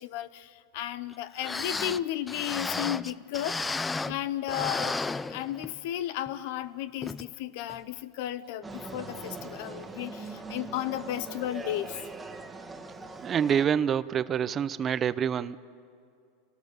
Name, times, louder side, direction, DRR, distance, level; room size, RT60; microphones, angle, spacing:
voice 1, 0.0-3.7 4.1-5.0 5.3-12.0, left 12 dB, 65° left, 15 dB, 0.7 m, -34 dB
sound 1, 1.1-1.2 1.4-4.2 4.5-5.9 6.3-6.4 7.0-7.3 7.7-7.8, left 3 dB, 15° left, 0.5 m, -33 dB
sound 2, 8.6-13.7, right 3 dB, 15° right, 1.7 m, -41 dB
voice 2, 13.2-15.6, right 8 dB, 30° right, 16 dB, 0.7 m, -26 dB
29.0 x 18.5 x 6.8 m, 2.4 s
supercardioid pair, 120°, 0 cm